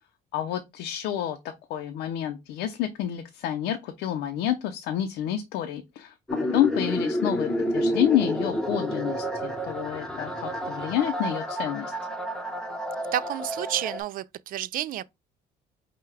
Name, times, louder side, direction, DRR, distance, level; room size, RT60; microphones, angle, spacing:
voice 1, 0.3-1.4 1.7-6.1 6.4-11.9, left 11 dB, 90° left, 0.6 m, -29 dB
sound 1, 6.3-14.0, equal, 5° left, 0.9 m, -30 dB
voice 2, 13.1-15.0, right 12 dB, 55° right, 0.4 m, -30 dB
5.6 x 2.3 x 3.3 m
cardioid pair, 110°, 17 cm